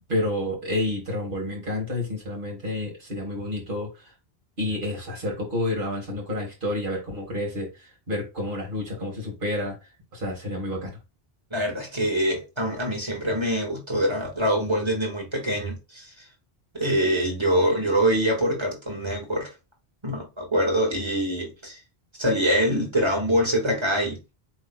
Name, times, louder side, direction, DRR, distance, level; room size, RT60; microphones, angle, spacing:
voice 1, 0.1-3.9 4.6-7.7 8.1-9.8 10.1-11.0, left 1 dB, 55° right, 1.8 m, -29 dB
voice 2, 11.5-16.1 16.7-19.5 20.0-21.8 22.2-24.2, equal, 25° right, 1.8 m, -24 dB
8.0 x 2.8 x 2.3 m
omnidirectional pair, 1.1 m